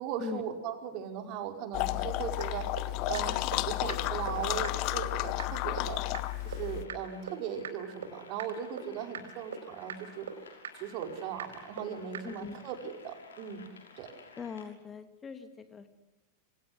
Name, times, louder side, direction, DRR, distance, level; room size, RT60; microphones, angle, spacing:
voice 1, 0.0-6.0 6.4-10.3 10.7-13.6 14.0-14.1, right 8 dB, 40° right, 5 dB, 5.1 m, -38 dB
sound 1, 1.7-6.8, left 17 dB, 40° left, 1.2 m, -32 dB
sound 2, 2.4-2.5 2.8-2.9 3.1-3.2 3.5-3.6 3.9-4.0 4.3-4.4 4.6-4.7 5.0-5.1 5.4-5.5 5.8-5.9 6.1-6.2 6.5-6.6 6.9-7.0 7.3-7.4 7.6-7.7 8.0-8.1 8.4-8.5 8.8-8.9 9.1-9.2 9.5-9.6 9.9-10.0 10.3-10.4 10.6-10.7 11.0-11.1 11.4-11.5 11.8-11.9 12.1-12.2, right 9 dB, 65° right, 4.3 m, -38 dB
sound 3, 4.0-14.6, left 5 dB, 70° left, 5.9 m, -55 dB
voice 2, 12.2-12.6 14.4-15.9, left 6 dB, 20° left, 9 dB, 2.4 m, -41 dB
27.5 x 26.0 x 8.0 m, 0.95 s
figure-of-eight pair, 90°, 0 cm